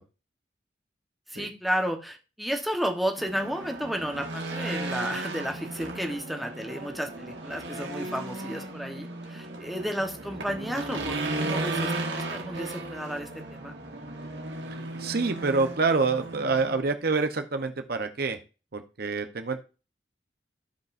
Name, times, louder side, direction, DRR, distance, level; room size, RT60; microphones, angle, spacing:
voice 1, 1.3-13.7, equal, ahead, 2 dB, 1.2 m, -32 dB
Race car auto racing / Engine, 3.2-16.8, right 2 dB, 85° right, 1.8 m, -35 dB
voice 2, 15.0-18.4 18.7-19.6, right 4 dB, 60° right, 7 dB, 0.8 m, -27 dB
15.5 x 5.3 x 2.6 m, 0.33 s
head